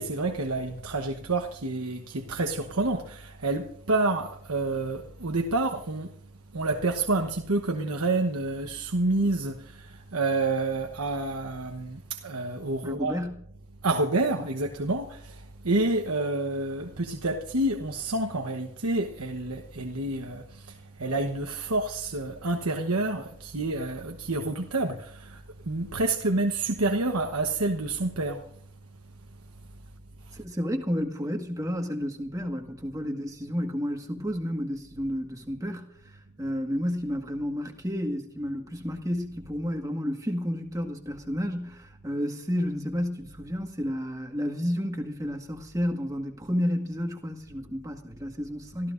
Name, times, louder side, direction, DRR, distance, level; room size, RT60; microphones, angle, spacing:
voice 1, 0.0-6.1 6.5-13.2 13.8-28.5 30.3-30.4, right 2 dB, 85° right, 1.2 m, -28 dB
voice 2, 12.8-13.4 30.3-48.9, equal, 15° right, 1.7 m, -31 dB
27.5 x 14.5 x 2.6 m
head